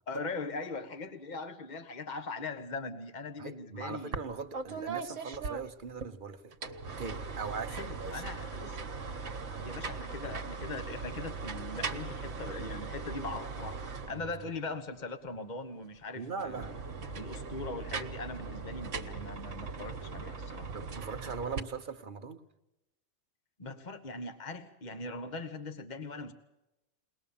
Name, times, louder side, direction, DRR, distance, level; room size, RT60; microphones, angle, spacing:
voice 1, 0.1-4.2 7.7-8.8 9.6-13.8 14.1-16.7 17.1-20.7 23.6-26.3, left 3 dB, 35° left, 8 dB, 1.5 m, -40 dB
voice 2, 3.4-6.5 7.0-8.5 13.9-14.5 16.1-16.8 20.7-22.4, right 5 dB, 40° right, 7 dB, 1.1 m, -40 dB
sound 1, 4.1-4.3 4.5-6.1 6.5-14.6 16.3-21.6, right 4 dB, 65° right, 1.6 m, -39 dB
22.0 x 19.5 x 7.2 m, 0.94 s
omnidirectional pair, 1.4 m